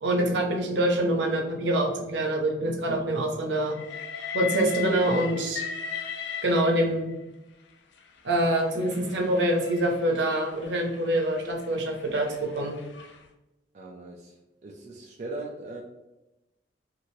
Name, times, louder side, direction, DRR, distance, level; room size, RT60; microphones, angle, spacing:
voice 1, 0.0-3.8 4.3-5.6 6.4-7.2 8.2-12.8, right 1 dB, 75° right, 2 dB, 0.6 m, -25 dB
Train, 3.7-7.1 8.0-13.2, left 8 dB, 75° left, 0.4 m, -38 dB
voice 2, 13.7-15.8, right 2 dB, 40° right, 0 dB, 0.3 m, -39 dB
2.7 x 2.5 x 3.0 m, 0.98 s
head